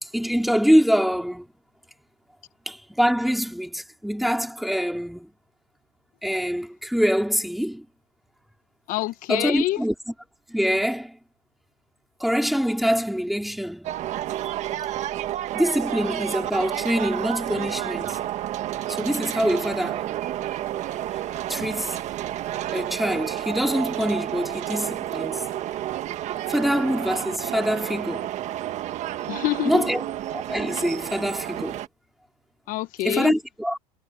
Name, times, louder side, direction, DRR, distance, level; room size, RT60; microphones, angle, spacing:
voice 1, 0.0-1.4 2.7-5.3 6.2-7.9 9.3-9.9 10.5-11.2 12.2-13.9 15.5-18.2 18.9-20.1 21.1-21.2 21.5-22.0 22.7-25.5 26.5-28.3 29.6-30.1 30.3-31.8 33.0-33.8, equal, ahead, 3.9 m, -24 dB
voice 2, 8.9-9.8 29.3-29.8 32.7-33.3, left 18 dB, 45° left, 1.1 m, -26 dB
sound 1, 13.8-31.9, right 13 dB, 35° right, 1.6 m, -30 dB
supercardioid pair, 130°, 20 cm